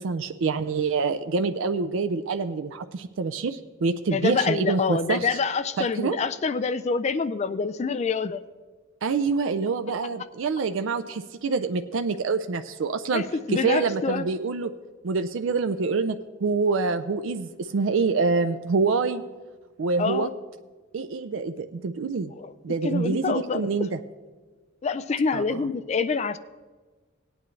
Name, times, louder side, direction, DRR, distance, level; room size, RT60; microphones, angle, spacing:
voice 1, 0.0-5.3 6.0-6.2 9.0-13.2 13.5-14.7 15.0-19.2 19.8-20.3 20.9-22.3 22.6-24.0 25.3-25.7, right 4 dB, 70° right, 8 dB, 0.4 m, -26 dB
voice 2, 4.1-8.4 13.1-14.3 20.0-20.3 22.4-22.5 22.8-23.7 24.8-26.4, left 5 dB, 35° left, 13 dB, 0.3 m, -26 dB
17.5 x 9.0 x 3.2 m, 1.4 s
head